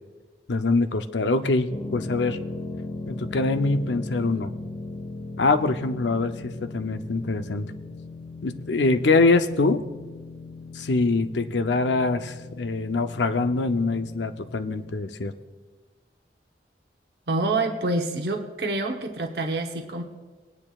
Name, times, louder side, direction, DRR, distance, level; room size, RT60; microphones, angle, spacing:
voice 1, 0.5-2.4 3.1-4.5 5.4-7.7 8.4-9.8 10.7-15.3, left 3 dB, 85° left, 9 dB, 0.6 m, -24 dB
sound 1, 1.7-14.9, left 2 dB, 25° left, 1.0 m, -38 dB
voice 2, 17.3-20.0, right 2 dB, 65° right, 3 dB, 1.0 m, -27 dB
20.5 x 9.8 x 2.4 m, 1.3 s
head